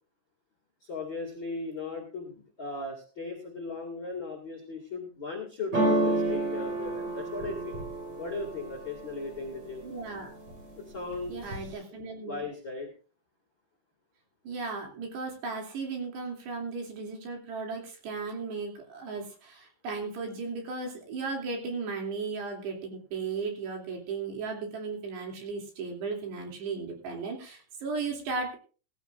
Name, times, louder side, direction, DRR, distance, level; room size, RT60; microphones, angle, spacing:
voice 1, 0.8-7.8 8.2-9.9 10.7-12.0 12.3-12.9, left 3 dB, 40° left, 0 dB, 1.7 m, -37 dB
sound 1, 5.7-9.6 10.1-10.7 11.0-11.7, right 2 dB, 30° right, 5.2 m, -30 dB
voice 2, 9.8-10.3 11.3-12.4 14.4-28.6, right 4 dB, 60° right, 1 dB, 4.7 m, -36 dB
17.5 x 15.0 x 2.5 m, 0.38 s
omnidirectional pair, 5.8 m